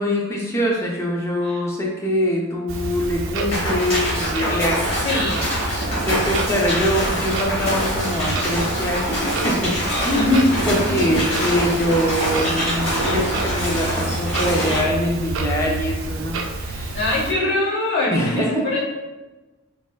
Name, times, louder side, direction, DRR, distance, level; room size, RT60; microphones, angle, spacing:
voice 1, 0.0-4.9 5.9-9.8 10.0-16.9 18.0-18.7, equal, 10° left, -3 dB, 0.4 m, -23 dB
Clock, 2.7-17.3, right 2 dB, 60° right, 0.4 m, -29 dB
sound 1, 3.5-14.8, equal, 35° left, 1.4 m, -25 dB
voice 2, 5.0-5.5 10.2-10.5 11.1-11.2 16.9-18.8, left 2 dB, 55° left, -5 dB, 0.8 m, -22 dB
3.2 x 2.2 x 2.2 m, 1.1 s
head